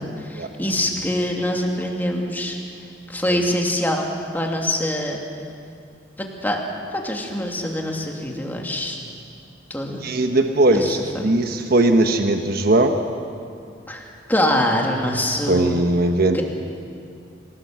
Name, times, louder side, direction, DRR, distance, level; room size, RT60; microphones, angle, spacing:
voice 1, 0.0-2.6 3.1-4.1 4.3-5.2 6.2-6.6 6.9-9.0 9.7-10.0 10.7-11.6 13.9-15.9 16.3-16.4, left 1 dB, 10° left, 0 dB, 2.7 m, -24 dB
voice 2, 10.0-12.9 15.5-16.4, right 2 dB, 55° right, 5 dB, 1.2 m, -19 dB
27.0 x 18.0 x 7.7 m, 2.4 s
head